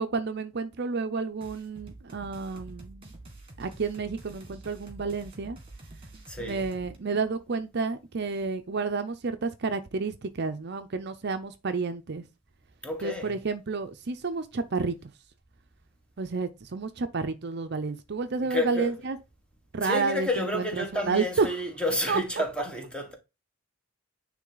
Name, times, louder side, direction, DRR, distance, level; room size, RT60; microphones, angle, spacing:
voice 1, 0.0-3.1 3.6-5.6 6.4-12.2 13.0-14.9 16.2-19.2 19.7-21.5 22.1-22.2, right 4 dB, 50° right, 0.6 m, -30 dB
sound 1, 1.4-7.0, right 2 dB, 25° right, 1.8 m, -47 dB
voice 2, 6.3-6.7 12.8-13.4 18.4-18.9 19.8-23.1, left 1 dB, 5° left, 1.3 m, -30 dB
9.6 x 3.3 x 3.9 m
head